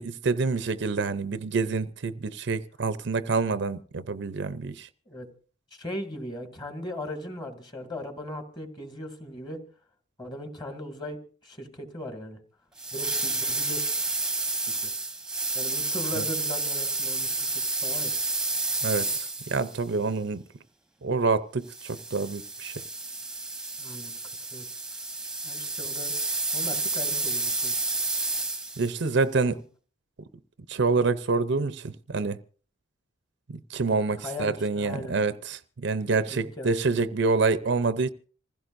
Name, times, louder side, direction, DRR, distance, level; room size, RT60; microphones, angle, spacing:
voice 1, 0.0-4.9 16.2-16.3 18.8-20.4 21.0-22.8 28.8-29.6 30.7-32.4 33.5-38.1, right 4 dB, 60° right, 0.6 m, -27 dB
voice 2, 5.7-9.6 10.2-11.2 11.4-12.4 12.9-14.0 14.6-14.9 15.5-18.1 23.8-24.1 24.5-24.7 25.4-26.1 26.5-27.8 34.2-35.1 36.3-36.7, left 1 dB, 20° left, 2.3 m, -38 dB
sound 1, 12.8-19.8 21.7-28.9, right 3 dB, 5° right, 1.1 m, -30 dB
27.0 x 16.0 x 2.6 m
head